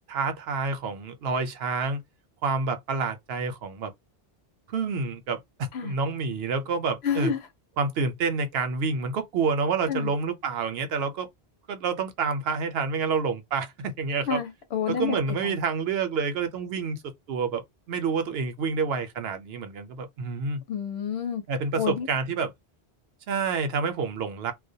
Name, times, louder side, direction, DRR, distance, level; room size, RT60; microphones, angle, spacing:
voice 1, 0.1-2.0 2.4-3.9 4.7-7.3 7.8-11.3 11.7-14.4 14.9-20.6 21.5-22.5 23.3-24.5, right 5 dB, 75° right, 0.8 m, -28 dB
voice 2, 7.0-7.5 9.9-10.1 14.3-15.6 20.7-21.4 21.8-22.1, left 7 dB, 85° left, 0.9 m, -29 dB
2.2 x 2.1 x 2.6 m
omnidirectional pair, 1.0 m